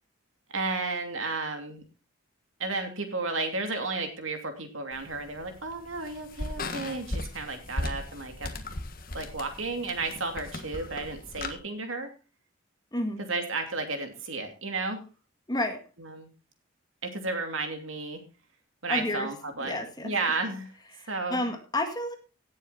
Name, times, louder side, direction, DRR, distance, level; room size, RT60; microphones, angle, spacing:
voice 1, 0.5-1.8 2.6-8.5 9.1-12.1 13.2-15.1 16.0-16.3 17.0-18.2 18.8-19.8 20.0-20.7 21.1-21.4, right 3 dB, 70° right, 5 dB, 2.8 m, -33 dB
sound 1, 4.9-11.5, left 2 dB, 45° left, 1.5 m, -37 dB
voice 2, 12.9-13.2 15.5-15.8 18.9-19.3 19.6-20.1 21.0-22.1, left 1 dB, 20° left, 5 dB, 1.8 m, -31 dB
17.0 x 7.4 x 4.2 m, 0.33 s
head